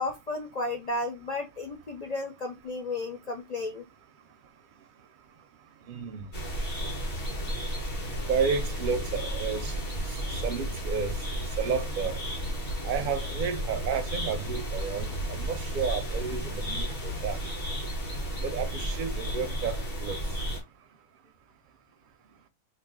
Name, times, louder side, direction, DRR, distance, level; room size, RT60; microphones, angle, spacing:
voice 1, 0.0-3.9, left 2 dB, 70° left, 0.3 m, -33 dB
voice 2, 5.8-6.3 8.3-9.7 10.1-11.2 11.6-12.2 12.8-17.4 18.4-20.2, right 6 dB, 60° right, 0.5 m, -31 dB
sound 1, 6.3-20.6, equal, 45° left, 1.6 m, -33 dB
3.2 x 2.7 x 3.8 m
omnidirectional pair, 1.4 m